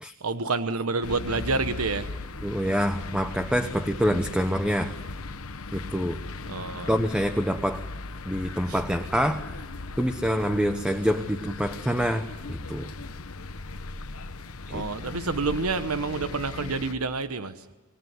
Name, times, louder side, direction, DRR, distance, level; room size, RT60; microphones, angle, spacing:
voice 1, 0.2-2.1 6.5-6.9 8.7-8.8 14.7-17.7, right 3 dB, 85° right, 11 dB, 1.1 m, -28 dB
sound 1, 1.0-17.0, left 3 dB, 80° left, 1.1 m, -38 dB
voice 2, 2.4-4.9 5.7-6.2 6.9-7.8 8.3-9.4 10.0-12.9 14.7-14.8, equal, 5° right, 8 dB, 1.0 m, -26 dB
26.5 x 19.0 x 9.6 m, 1.2 s
head